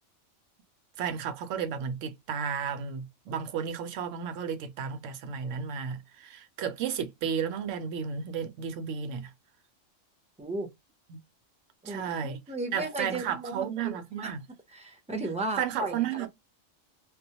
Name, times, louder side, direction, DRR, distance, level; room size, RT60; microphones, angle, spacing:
voice 1, 1.0-9.3 11.1-11.2 11.9-12.4 12.7-14.4 15.6-16.3, right 7 dB, 75° right, 0.9 m, -33 dB
voice 2, 10.4-10.7 11.8-14.3 14.7-16.0, right 2 dB, 10° right, 0.4 m, -35 dB
2.2 x 2.1 x 2.6 m
omnidirectional pair, 1.3 m